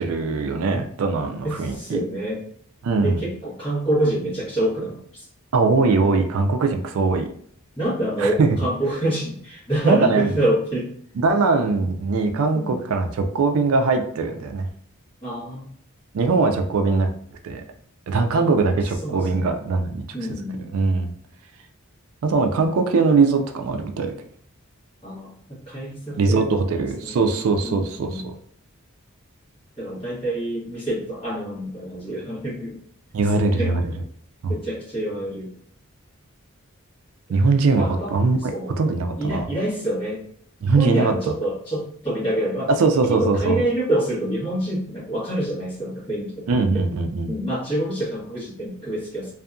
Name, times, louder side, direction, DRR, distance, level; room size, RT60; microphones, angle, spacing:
voice 1, 0.0-2.0 2.8-3.2 5.5-7.3 8.2-8.6 9.9-10.3 11.2-14.7 16.1-17.1 17.4-17.6 18.1-20.0 20.7-21.1 22.2-24.1 26.2-28.4 33.1-33.9 34.4-34.6 37.3-38.5 38.8-39.5 40.6-41.3 42.8-43.6 46.5-47.3, right 4 dB, 70° right, 6 dB, 0.3 m, -21 dB
voice 2, 1.4-2.4 3.0-5.2 7.7-10.9 12.5-12.8 15.2-15.7 18.3-18.5 19.0-19.5 20.1-20.7 25.0-27.2 27.6-28.3 29.8-32.7 33.3-33.7 34.5-35.5 37.8-38.1 38.5-38.7 39.2-40.2 40.7-42.7 43.2-46.5 46.7-46.8 47.3-49.3, right 1 dB, 25° left, -7 dB, 1.2 m, -27 dB
2.7 x 2.3 x 2.5 m, 0.63 s
head